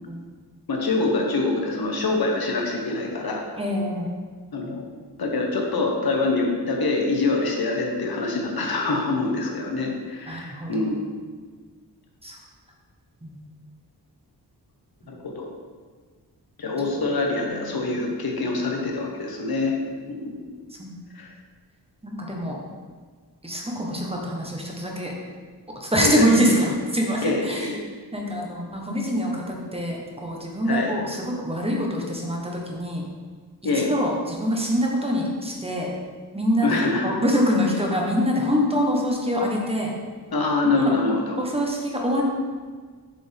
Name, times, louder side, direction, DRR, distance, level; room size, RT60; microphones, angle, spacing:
voice 1, 0.7-3.4 4.5-4.8 5.2-10.9 15.1-15.4 16.6-19.8 20.1-20.4 21.1-21.3 25.9-26.5 27.2-27.8 30.7-30.9 33.6-33.9 36.6-37.1 40.3-41.3, left 3 dB, 60° left, 1 dB, 1.2 m, -25 dB
voice 2, 3.6-4.1 10.3-10.9 12.2-12.4 13.2-13.4 20.8-21.0 22.0-22.6 23.4-25.1 25.8-27.7 28.1-33.0 33.7-35.9 36.3-39.9 40.8-40.9 41.4-42.2, equal, 15° right, -1 dB, 1.1 m, -25 dB
7.4 x 5.1 x 3.5 m, 1.5 s
wide cardioid pair, 125°, 41 cm